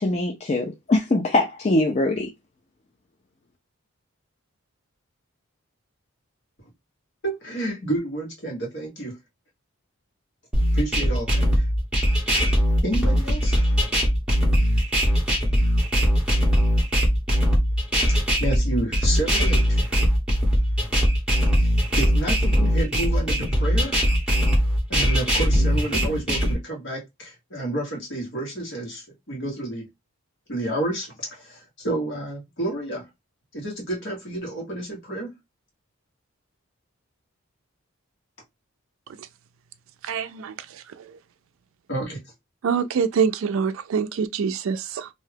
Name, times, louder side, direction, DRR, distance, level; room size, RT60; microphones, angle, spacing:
voice 1, 0.0-2.3, left 2 dB, 30° left, 0.4 m, -22 dB
voice 2, 7.2-9.2 10.7-11.7 12.8-13.6 18.1-19.9 21.6-24.0 24.9-29.9 30.5-33.1 33.5-35.3 41.9-42.2, right 1 dB, 55° left, 1.3 m, -30 dB
sound 1, 10.5-26.5, equal, 5° right, 1.0 m, -20 dB
voice 3, 40.0-41.2 42.6-45.1, right 6 dB, 70° right, 0.3 m, -25 dB
2.6 x 2.2 x 3.3 m
head